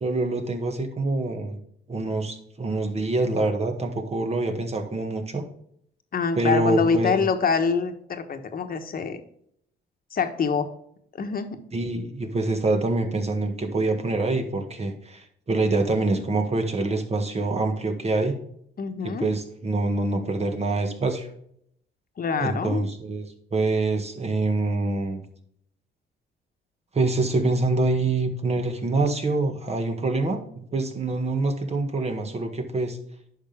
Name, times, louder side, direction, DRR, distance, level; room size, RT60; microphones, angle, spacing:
voice 1, 0.0-1.6 1.9-5.4 6.3-7.2 11.7-18.4 19.0-21.3 22.4-23.2 23.5-25.2 26.9-33.0, right 2 dB, 30° right, 5 dB, 1.6 m, -25 dB
voice 2, 6.1-9.2 10.1-10.7 11.1-11.6 18.8-19.3 22.2-22.9, left 5 dB, 45° left, 7 dB, 1.2 m, -25 dB
9.7 x 6.0 x 3.5 m, 0.69 s
cardioid pair, 90°, 20 cm